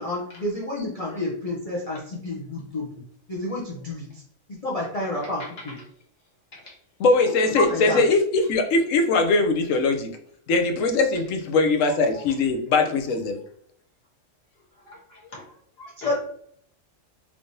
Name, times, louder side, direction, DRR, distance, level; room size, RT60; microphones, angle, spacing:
voice 1, 0.0-3.0 3.3-4.2 4.5-5.8 7.5-8.0 16.0-16.1, left 1 dB, 35° left, -4 dB, 0.6 m, -29 dB
voice 2, 5.2-5.7 6.5-6.8 7.2-7.5 11.8-12.2 14.8-16.1, left 3 dB, 50° left, -3 dB, 1.4 m, -39 dB
voice 3, 7.0-10.1 10.5-13.4, left 3 dB, 85° left, 5 dB, 1.0 m, -21 dB
3.4 x 3.2 x 2.6 m, 0.63 s
omnidirectional pair, 1.3 m